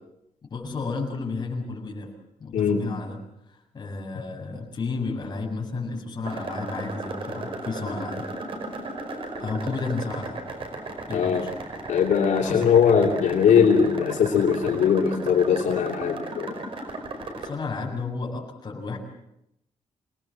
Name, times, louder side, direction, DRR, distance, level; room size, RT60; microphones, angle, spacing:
voice 1, 0.5-2.1 2.4-3.2 3.7-8.3 9.4-10.4 11.1-11.5 12.4-12.6 17.4-19.0, left 4 dB, 35° left, -1 dB, 7.1 m, -32 dB
voice 2, 2.5-2.8 11.1-11.4 11.9-16.6, left 7 dB, 80° left, -1 dB, 3.2 m, -20 dB
sound 1, 6.2-17.5, right 2 dB, 45° right, 5.1 m, -35 dB
28.0 x 19.5 x 7.7 m, 0.81 s
wide cardioid pair, 150°, 13 cm